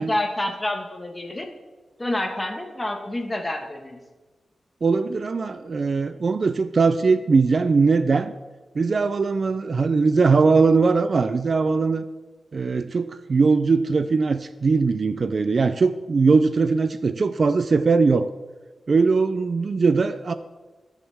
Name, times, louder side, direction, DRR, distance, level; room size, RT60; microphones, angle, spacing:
voice 1, 0.0-1.4 2.0-4.0, left 1 dB, 15° left, 3 dB, 1.4 m, -28 dB
voice 2, 4.8-8.3 8.8-12.0 12.5-18.3 18.9-20.3, right 4 dB, 45° right, 11 dB, 0.4 m, -20 dB
21.0 x 7.1 x 3.5 m, 1.3 s
wide cardioid pair, 145°, 0 cm